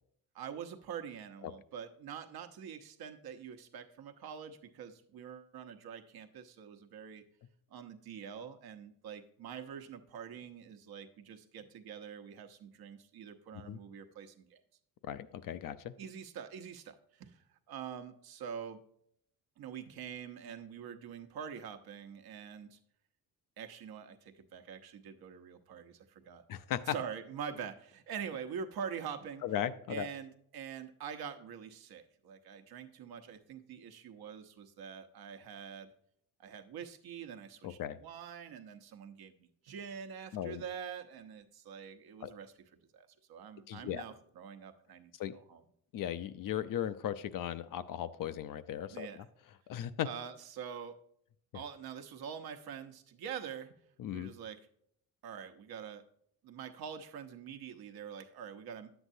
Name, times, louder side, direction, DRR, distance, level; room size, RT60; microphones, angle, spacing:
voice 1, 0.3-7.2 7.7-14.6 16.0-18.8 19.6-22.8 23.6-26.4 26.9-29.4 29.9-35.9 36.4-42.5 42.9-45.6 48.9-49.3 50.0-51.0 51.5-53.8 54.1-54.6 55.2-56.0 56.4-58.9, right 7 dB, 70° right, 6 dB, 1.0 m, -45 dB
voice 2, 15.0-15.9 26.5-26.9 29.4-30.1 37.6-38.0 40.3-40.6 42.2-42.3 43.7-44.0 45.2-45.4 45.9-49.3 49.7-50.1 54.0-54.3, left 10 dB, 60° left, 13 dB, 0.5 m, -37 dB
9.9 x 7.9 x 2.7 m, 0.67 s
cardioid pair, 105°, 39 cm